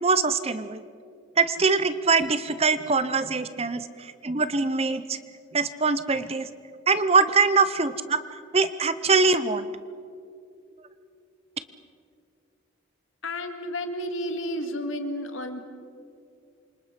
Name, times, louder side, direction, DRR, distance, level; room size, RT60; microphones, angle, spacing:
voice 1, 0.0-0.8 1.4-5.2 5.5-6.5 6.9-8.2 8.5-9.7, right 4 dB, 30° right, 13 dB, 0.8 m, -23 dB
voice 2, 13.2-15.6, left 1 dB, 80° left, 6 dB, 2.1 m, -31 dB
28.0 x 26.0 x 5.3 m, 2.5 s
head